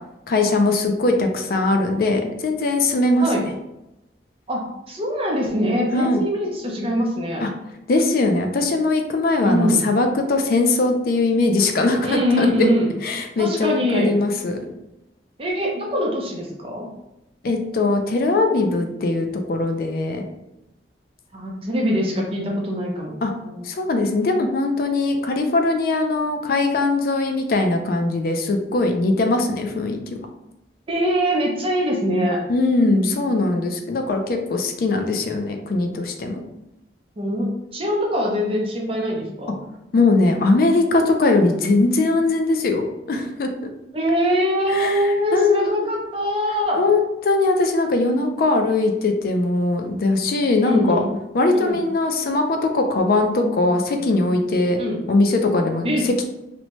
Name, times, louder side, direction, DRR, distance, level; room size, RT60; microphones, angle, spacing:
voice 1, 0.3-3.5 5.9-6.2 7.4-7.5 7.9-12.7 13.0-14.6 17.4-20.2 23.2-23.3 23.6-30.0 32.5-36.4 39.9-43.5 44.7-45.7 46.8-51.1 51.3-54.8 55.1-56.3, left 2 dB, 55° left, 4 dB, 0.3 m, -20 dB
voice 2, 4.5-7.4 9.4-9.8 12.0-12.9 13.4-14.1 15.4-16.9 21.3-23.1 23.4-23.6 30.9-32.4 37.2-39.6 43.9-46.8 50.6-51.1 51.5-51.8 54.8-55.0 55.8-56.0, equal, 30° right, -1 dB, 0.6 m, -23 dB
2.7 x 2.1 x 2.9 m, 0.91 s
head